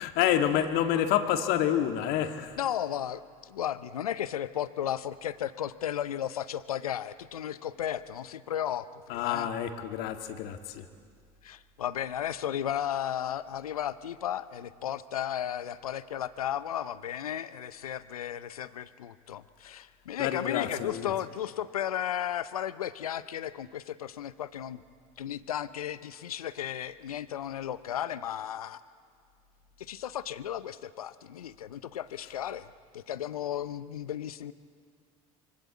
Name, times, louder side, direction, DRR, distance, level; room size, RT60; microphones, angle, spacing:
voice 1, 0.0-2.6 9.1-10.9 20.2-21.1, left 10 dB, 60° left, 6 dB, 2.0 m, -28 dB
voice 2, 2.6-9.5 11.4-24.8 25.2-28.8 29.8-34.5, left 10 dB, 85° left, 15 dB, 0.8 m, -34 dB
24.5 x 24.5 x 8.3 m, 2.1 s
hypercardioid pair, 70°, 18 cm